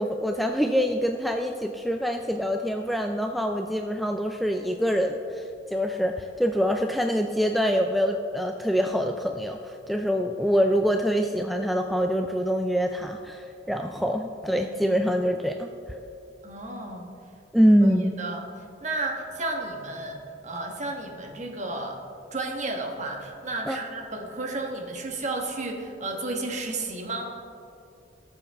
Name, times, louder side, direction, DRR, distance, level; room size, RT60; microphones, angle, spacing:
voice 1, 0.0-15.7 17.5-18.1 23.7-23.8, equal, ahead, 4 dB, 0.3 m, -25 dB
voice 2, 16.4-17.1 17.8-18.4 18.8-22.0 22.3-27.3, right 2 dB, 40° right, 2 dB, 1.3 m, -32 dB
18.0 x 7.1 x 3.5 m, 2.6 s
head